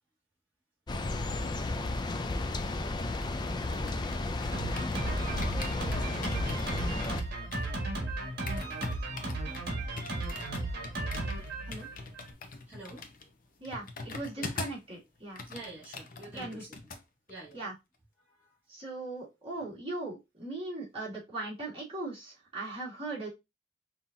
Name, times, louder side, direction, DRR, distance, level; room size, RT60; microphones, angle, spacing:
sound 1, 0.9-7.2, left 2 dB, 25° left, 0.4 m, -33 dB
sound 2, 2.8-5.1 5.4-14.9 15.2-17.0 17.3-17.6, left 3 dB, 50° left, 0.8 m, -43 dB
Drum kit, 4.5-12.3, right 2 dB, 55° right, 1.5 m, -35 dB
voice 1, 12.7-13.0 14.4-14.6 15.5-16.7 17.3-17.6 18.3-18.5, right 2 dB, 10° right, 1.8 m, -47 dB
voice 2, 13.6-15.4 16.3-16.7 17.5-17.7 18.7-23.3, right 2 dB, 30° right, 2.3 m, -39 dB
5.5 x 2.9 x 2.6 m
head